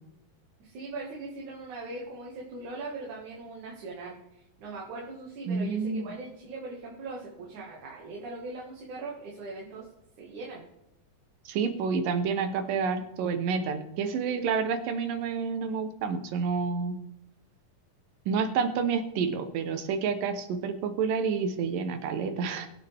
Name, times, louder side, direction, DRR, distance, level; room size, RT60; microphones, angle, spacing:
voice 1, 0.6-9.9 10.2-10.6, right 3 dB, 65° right, -4 dB, 3.4 m, -40 dB
voice 2, 5.5-6.1 11.5-17.0 18.3-22.7, right 5 dB, 85° right, 8 dB, 2.8 m, -29 dB
22.0 x 7.5 x 3.5 m, 0.85 s
omnidirectional pair, 3.8 m